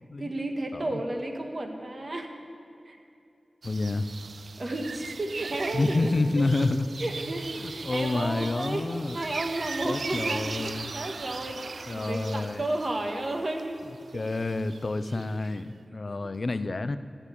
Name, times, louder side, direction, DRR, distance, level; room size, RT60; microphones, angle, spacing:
voice 1, 0.2-2.3 2.9-3.0 4.6-6.1 6.4-6.5 7.0-13.8 14.1-14.2, right 1 dB, 55° right, 4 dB, 1.6 m, -32 dB
voice 2, 3.6-4.1 5.7-6.9 7.6-9.2 9.8-10.9 11.9-12.6 14.1-17.0, left 2 dB, 55° left, 12 dB, 0.6 m, -28 dB
sound 1, 3.6-15.6, right 4 dB, 90° right, 0.3 m, -39 dB
13.0 x 8.9 x 9.9 m, 2.6 s
wide cardioid pair, 65°, 0 cm